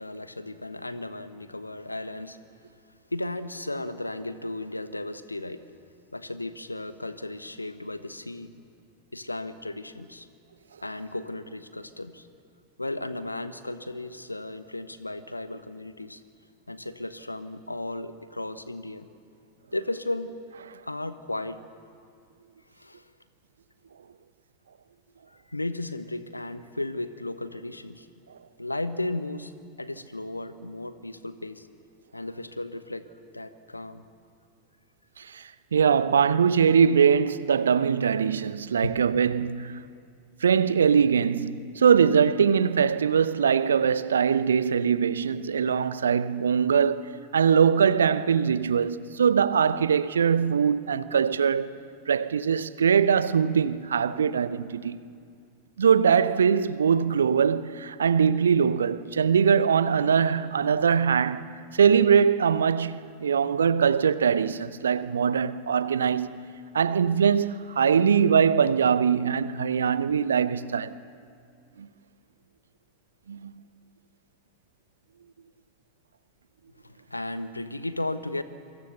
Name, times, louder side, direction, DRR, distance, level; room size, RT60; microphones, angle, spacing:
voice 1, 0.0-2.4 3.1-5.6 6.1-8.6 9.1-10.3 10.8-12.3 12.8-16.2 16.7-19.1 19.7-20.4 20.8-21.6 22.8-23.1 25.5-28.1 28.6-29.5 29.8-31.7 32.1-33.1 33.3-34.0 38.8-38.9 76.8-78.4, left 2 dB, 85° left, 1.1 m, -35 dB
voice 2, 35.2-39.8 40.4-51.7 52.1-55.0 55.8-66.4 66.7-70.9 71.8-71.9 73.3-73.5, right 7 dB, 70° right, 0.8 m, -22 dB
27.5 x 24.0 x 6.9 m
figure-of-eight pair, 90°, 0 cm